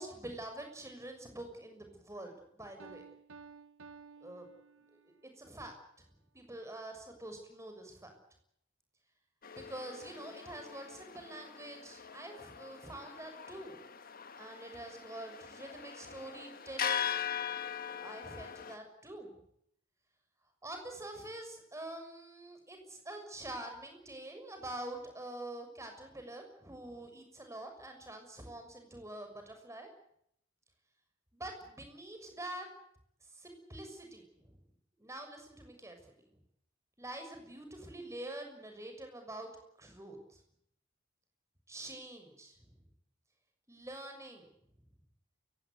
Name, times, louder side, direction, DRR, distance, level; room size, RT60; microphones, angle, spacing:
voice 1, 0.0-3.0 4.2-4.5 5.4-5.7 6.3-8.1 9.5-13.8 14.4-17.3 18.0-19.3 20.6-29.9 31.3-32.7 33.3-34.6 35.0-36.0 37.0-39.5 39.8-40.4 41.7-42.8 43.7-44.5, right 1 dB, 15° right, 5 dB, 6.5 m, -46 dB
Piano, 2.8-5.3, right 5 dB, 70° right, 1.2 m, -54 dB
sound 1, 9.4-18.8, left 8 dB, 45° left, 1.6 m, -41 dB
29.0 x 17.0 x 8.1 m, 0.71 s
head